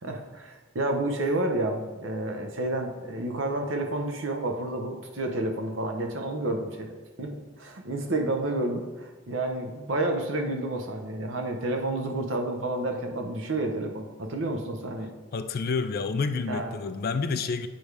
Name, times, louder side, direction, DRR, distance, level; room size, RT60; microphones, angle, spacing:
voice 1, 0.0-6.9 7.2-15.1 16.5-16.7, right 2 dB, 65° right, 0.9 m, -30 dB
voice 2, 15.3-17.7, left 4 dB, 45° left, 0.4 m, -29 dB
8.7 x 3.3 x 4.8 m
head